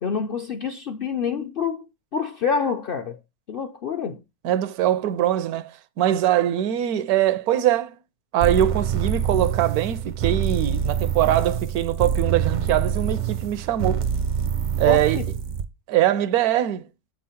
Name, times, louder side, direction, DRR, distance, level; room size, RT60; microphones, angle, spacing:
voice 1, 0.0-1.9 2.1-3.2 3.5-4.2 14.9-15.3, left 6 dB, 55° left, 0.6 m, -27 dB
voice 2, 4.4-8.0 8.3-14.0 14.8-15.2 15.9-16.9, right 12 dB, 80° right, 1.1 m, -22 dB
sound 1, 8.4-15.7, right 8 dB, 50° right, 0.5 m, -25 dB
8.0 x 3.7 x 5.6 m
omnidirectional pair, 1.6 m